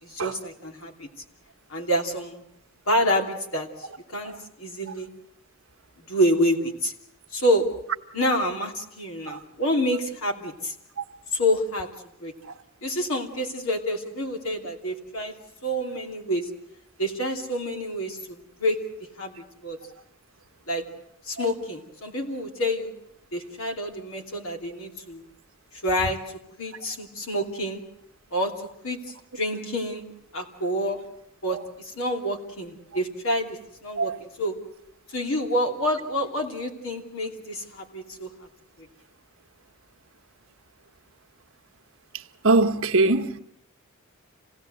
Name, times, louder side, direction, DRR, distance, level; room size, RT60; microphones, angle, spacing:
voice 1, 0.0-1.1 1.7-2.4 2.9-5.1 6.1-6.9 7.3-7.7 8.1-10.7 11.3-11.9 12.2-12.3 12.8-15.3 15.6-16.5 17.0-18.8 19.2-19.3 19.6-19.8 20.7-20.8 21.2-22.9 23.3-25.2 25.8-26.2 26.6-27.8 28.3-30.1 30.3-31.0 31.4-34.5 35.1-38.3 38.8-38.9, equal, 75° left, 3.0 m, -27 dB
voice 2, 42.4-43.4, right 3 dB, 70° right, 1.2 m, -21 dB
27.0 x 17.5 x 8.0 m
head